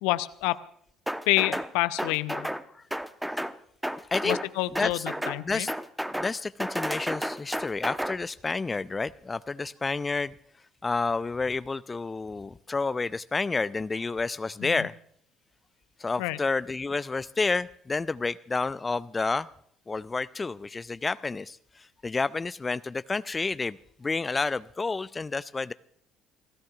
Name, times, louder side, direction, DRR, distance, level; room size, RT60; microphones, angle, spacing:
voice 1, 0.0-0.6 1.3-2.5 4.2-5.7 14.6-14.9 16.2-16.4, left 19 dB, 65° left, 15 dB, 0.7 m, -28 dB
sound 1, 1.1-1.7 2.0-2.6 2.9-3.5 3.8-4.5 4.7-5.4 5.7-6.3 6.6-8.1, equal, 5° right, 1.0 m, -31 dB
voice 2, 5.4-5.7 6.1-10.3 10.8-14.9 16.0-19.5 19.9-25.7, left 3 dB, 25° left, 17 dB, 0.5 m, -30 dB
29.5 x 17.0 x 2.5 m, 0.65 s
figure-of-eight pair, 50°, 0 cm